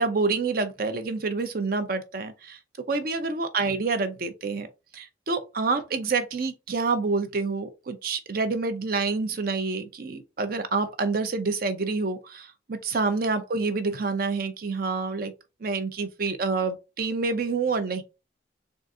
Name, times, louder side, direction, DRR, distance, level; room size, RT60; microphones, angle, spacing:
voice 1, 0.0-2.6 2.9-4.7 4.9-15.3 15.6-18.0, right 4 dB, 50° right, 0.6 m, -27 dB
3.9 x 2.5 x 3.6 m
head